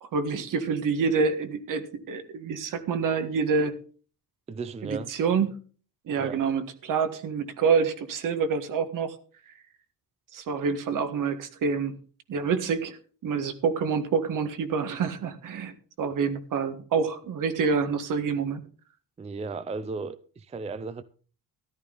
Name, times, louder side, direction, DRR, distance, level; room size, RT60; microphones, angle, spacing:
voice 1, 0.0-3.8 4.8-5.6 6.1-9.2 9.5-9.6 10.3-12.0 12.3-13.0 13.2-18.6, right 5 dB, 60° right, 1.7 m, -27 dB
voice 2, 4.5-5.1 6.1-6.4 19.2-21.0, right 4 dB, 20° right, 0.5 m, -35 dB
13.5 x 12.0 x 4.0 m
cardioid pair, 155°, 35 cm